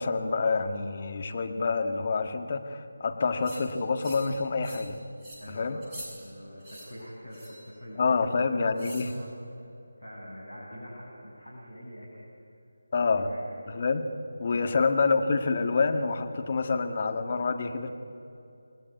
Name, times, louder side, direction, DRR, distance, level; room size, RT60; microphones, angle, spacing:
voice 1, 0.0-5.0 5.5-5.8 8.0-9.1 12.9-13.3 13.7-14.1 14.4-17.9, left 4 dB, 40° left, 5 dB, 1.8 m, -27 dB
sound 1, 3.4-3.6 4.0-4.3 4.6-4.9 5.2-5.4 5.8-6.1 6.6-6.9 7.3-7.6 8.8-9.1, right 1 dB, 15° right, 6.8 m, -44 dB
voice 2, 5.4-12.2 13.0-13.5 14.5-14.6, equal, 80° left, -5 dB, 7.2 m, -45 dB
28.0 x 21.0 x 9.5 m, 2.8 s
figure-of-eight pair, 155°, 0 cm